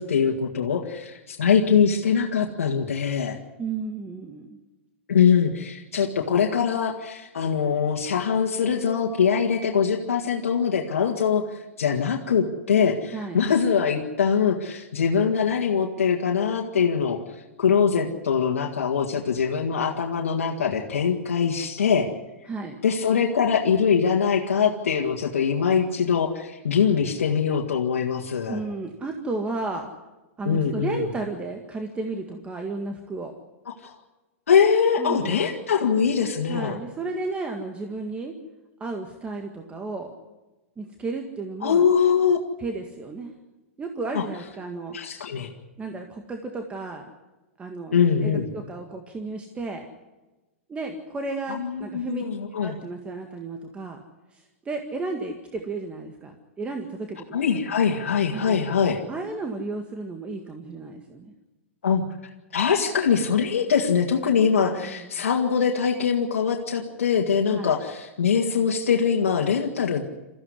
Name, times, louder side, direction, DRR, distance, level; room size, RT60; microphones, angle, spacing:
voice 1, 0.0-3.4 5.1-17.2 17.6-22.1 22.8-28.6 30.5-31.1 33.7-33.9 34.5-36.8 41.6-42.4 44.1-44.2 44.9-45.5 47.9-48.5 51.5-52.8 57.3-59.0 61.8-62.1 62.5-70.0, left 6 dB, 85° left, 0 dB, 2.0 m, -23 dB
voice 2, 3.6-4.5 13.1-13.4 22.5-22.8 28.5-29.9 30.4-33.3 35.0-35.4 36.5-38.4 38.8-40.1 40.8-41.9 42.6-43.3 43.8-45.0 45.8-47.1 47.6-48.0 48.2-49.9 50.7-52.2 52.6-54.0 54.3-57.4 58.3-58.6 59.1-61.3 64.8-65.1 67.5-67.7, right 3 dB, 15° right, 4 dB, 1.9 m, -33 dB
22.5 x 15.0 x 9.7 m, 1.1 s
hypercardioid pair, 125°, 7 cm